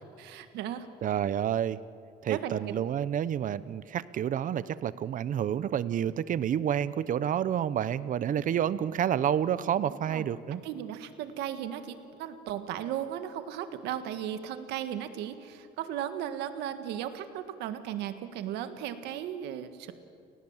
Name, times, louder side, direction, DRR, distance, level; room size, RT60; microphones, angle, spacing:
voice 1, 0.2-0.9 2.3-2.6 8.3-8.6 10.0-10.2 10.6-19.9, right 10 dB, 90° right, 9 dB, 1.7 m, -36 dB
voice 2, 1.0-1.8 2.2-10.6, right 9 dB, 50° right, 16 dB, 0.9 m, -29 dB
30.0 x 19.0 x 7.4 m, 2.4 s
cardioid pair, 110°, 17 cm